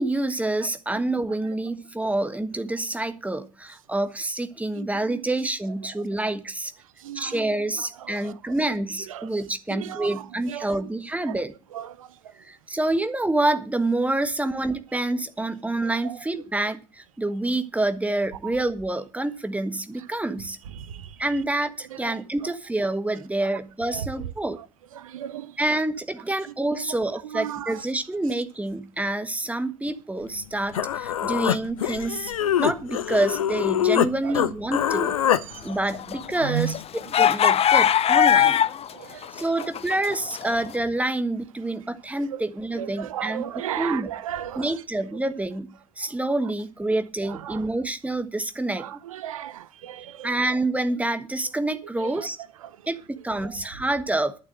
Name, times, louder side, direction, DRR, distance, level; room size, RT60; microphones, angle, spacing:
voice 1, 0.0-6.7 7.1-11.5 12.4-20.6 21.2-24.6 25.6-32.3 32.6-35.2 35.6-38.6 39.3-44.1 44.5-49.0 50.2-52.4 52.9-54.4, right 2 dB, 10° right, 1.5 m, -27 dB
voice 2, 0.6-1.1 4.8-5.2 7.0-7.6 8.0-8.3 9.1-9.3 9.7-10.7 11.3-11.4 11.7-12.1 16.0-16.2 20.7-21.2 21.9-22.2 23.4-23.5 23.9-24.3 25.0-25.6 26.7-27.0 27.2-27.8 34.2-34.4 35.3-35.6 36.4-36.7 38.9-39.7 42.3-42.4 42.7-44.7 47.3-47.6 48.8-50.3 52.0-52.3 52.6-52.8 53.4-53.5, right 11 dB, 75° right, 0.8 m, -35 dB
Human voice, 30.4-30.5 30.7-34.1 34.3-35.4, left 10 dB, 80° left, 0.6 m, -24 dB
sound 1, 35.7-38.9 39.2-40.5, left 9 dB, 35° left, 0.7 m, -20 dB
12.0 x 6.7 x 7.7 m
figure-of-eight pair, 55°, 18 cm